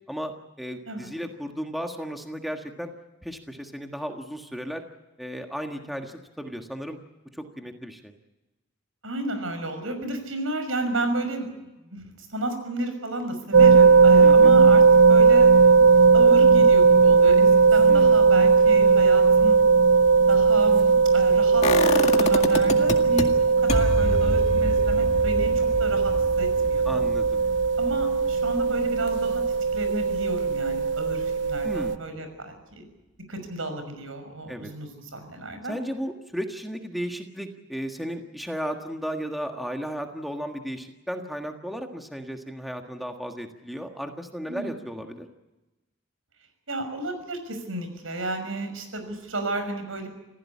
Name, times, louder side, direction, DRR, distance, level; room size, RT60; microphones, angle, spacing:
voice 1, 0.6-2.9 3.2-4.8 5.2-7.0 7.3-8.1 14.2-14.6 17.9-18.3 26.8-27.4 31.6-31.9 34.5-34.7 35.7-45.3, equal, ahead, 4 dB, 1.6 m, -34 dB
voice 2, 9.0-11.5 11.8-14.8 15.1-15.5 16.1-19.6 20.3-23.4 23.6-27.0 27.8-29.4 29.7-32.9 33.3-35.8 44.5-44.7 46.7-50.1, right 2 dB, 85° right, 8 dB, 6.0 m, -32 dB
sound 1, 13.5-32.0, right 5 dB, 60° right, 0.8 m, -18 dB
sound 2, 21.6-23.2 23.7-29.5 29.8-29.9, left 1 dB, 35° left, 2.0 m, -28 dB
27.0 x 16.0 x 8.5 m, 1.0 s
head